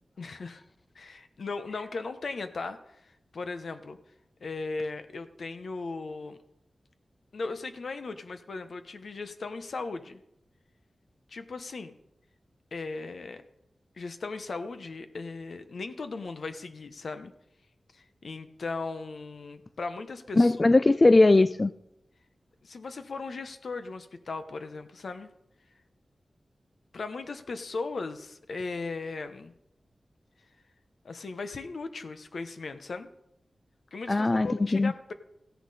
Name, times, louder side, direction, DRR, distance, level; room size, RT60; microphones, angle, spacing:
voice 1, 0.2-0.6 0.9-4.0 4.4-6.4 7.3-10.2 11.3-12.0 12.7-13.4 14.0-17.3 17.9-20.6 22.6-25.3 26.9-29.5 31.0-33.1 33.9-35.1, left 3 dB, 75° left, 9 dB, 1.0 m, -37 dB
voice 2, 20.4-21.7 34.1-34.9, left 2 dB, 35° left, 14 dB, 0.3 m, -20 dB
15.0 x 10.0 x 4.2 m, 0.82 s
wide cardioid pair, 75°, 0 cm